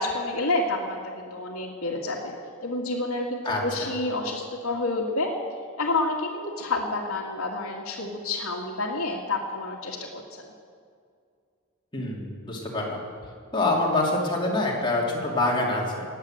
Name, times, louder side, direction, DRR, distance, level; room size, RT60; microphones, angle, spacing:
voice 1, 0.0-2.4 2.6-5.3 5.8-10.4, left 2 dB, 75° left, -4 dB, 2.0 m, -29 dB
voice 2, 3.4-3.9 11.9-13.0 13.5-16.0, left 2 dB, 20° left, -3 dB, 3.1 m, -26 dB
19.0 x 8.2 x 9.2 m, 2.2 s
head